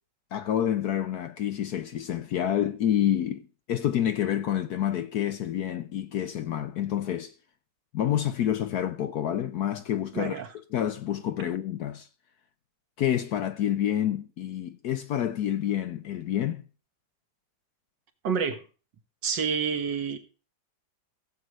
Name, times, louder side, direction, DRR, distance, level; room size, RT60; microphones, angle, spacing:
voice 1, 0.3-7.3 7.9-10.4 10.7-12.1 13.0-16.6, left 10 dB, 65° left, 1.0 m, -28 dB
voice 2, 10.1-10.5 18.2-18.6 19.2-20.2, right 6 dB, 70° right, 1.9 m, -28 dB
16.5 x 7.7 x 3.1 m
omnidirectional pair, 2.1 m